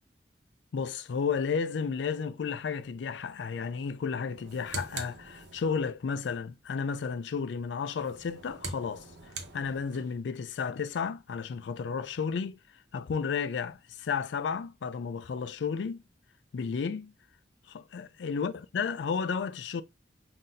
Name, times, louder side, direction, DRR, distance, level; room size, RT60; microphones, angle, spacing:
voice 1, 0.7-12.6 12.9-16.0 16.5-17.1 17.7-19.8, left 6 dB, 80° left, 0.4 m, -33 dB
sound 1, 4.3-5.9 7.9-10.2, right 3 dB, 85° right, 0.9 m, -43 dB
5.6 x 2.7 x 2.5 m
head